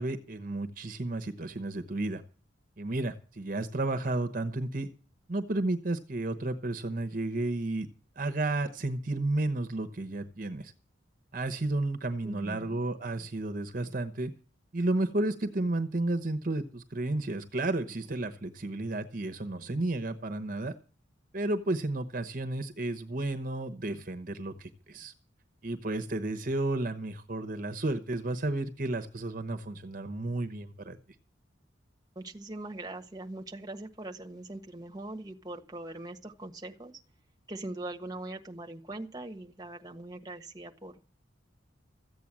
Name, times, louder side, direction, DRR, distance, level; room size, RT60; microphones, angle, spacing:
voice 1, 0.0-2.2 2.8-4.9 5.3-7.9 8.2-10.7 11.3-14.3 14.7-20.7 21.3-25.1 25.6-31.0, right 2 dB, 45° right, 8 dB, 1.0 m, -32 dB
voice 2, 12.2-12.8 32.1-37.0 37.5-41.1, right 2 dB, 20° right, 4 dB, 1.4 m, -41 dB
14.5 x 8.5 x 7.5 m, 0.38 s
head